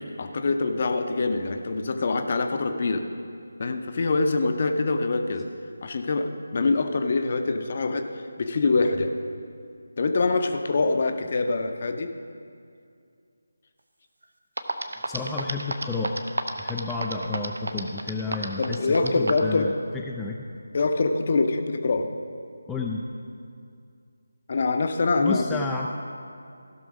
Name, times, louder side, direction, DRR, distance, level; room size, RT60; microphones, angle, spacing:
voice 1, 0.2-3.1 3.6-5.5 5.8-9.1 10.0-12.1 18.6-19.7 20.7-22.1 24.5-25.6, left 3 dB, 35° left, 6 dB, 0.7 m, -24 dB
sound 1, 14.2-14.3 14.6-19.5, right 2 dB, 65° right, 0.8 m, -29 dB
voice 2, 15.1-16.2 16.6-20.5 22.7-23.0 25.2-25.9, left 3 dB, 5° left, -2 dB, 0.4 m, -31 dB
15.5 x 6.1 x 5.1 m, 2.4 s
figure-of-eight pair, 155°, 0 cm